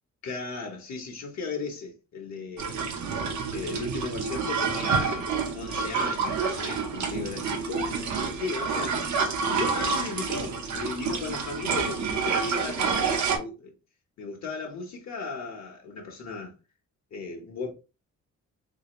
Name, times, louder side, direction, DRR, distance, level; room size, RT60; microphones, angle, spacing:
voice 1, 0.2-2.9 3.5-7.9 8.3-9.1 9.5-13.7 14.2-16.6 17.1-17.7, left 4 dB, 65° left, 0.9 m, -36 dB
sound 1, 2.6-13.4, right 5 dB, 70° right, 0.8 m, -28 dB
3.2 x 2.7 x 2.9 m
wide cardioid pair, 140°, 29 cm